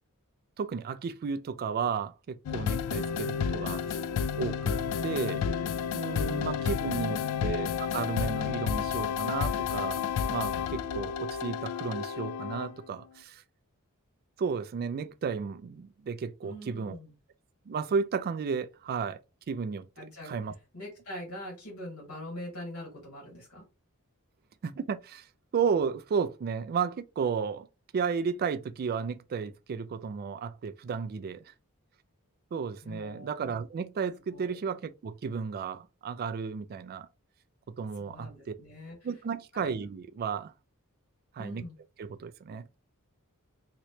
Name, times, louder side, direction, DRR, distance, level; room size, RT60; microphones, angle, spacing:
voice 1, 0.6-4.0 4.4-5.5 5.9-10.0 10.3-13.4 14.4-17.0 17.7-19.2 19.5-19.9 20.2-20.5 24.6-25.3 25.5-27.7 27.9-31.4 32.5-37.1 37.8-38.3 39.0-40.5 41.3-41.6 42.0-42.8, right 6 dB, 45° right, 0.3 m, -33 dB
sound 1, 2.5-12.9, left 7 dB, 85° left, 0.3 m, -31 dB
voice 2, 6.2-7.3 16.4-17.1 20.0-20.3 20.7-23.7 32.8-33.4 34.3-34.6 37.9-39.1 39.5-39.7 41.4-41.8, left 1 dB, 70° left, 1.8 m, -43 dB
3.1 x 3.0 x 2.7 m
head